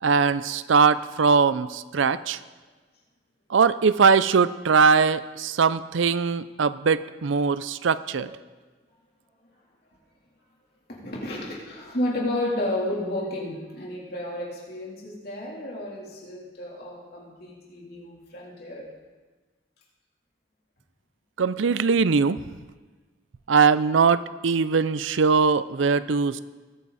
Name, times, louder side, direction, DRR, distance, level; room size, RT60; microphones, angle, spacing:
voice 1, 0.0-2.4 3.5-8.3 21.4-22.4 23.5-26.4, right 5 dB, 80° right, 15 dB, 0.5 m, -21 dB
voice 2, 10.9-18.9, left 1 dB, 55° left, -3 dB, 3.3 m, -32 dB
20.5 x 9.2 x 4.1 m, 1.3 s
head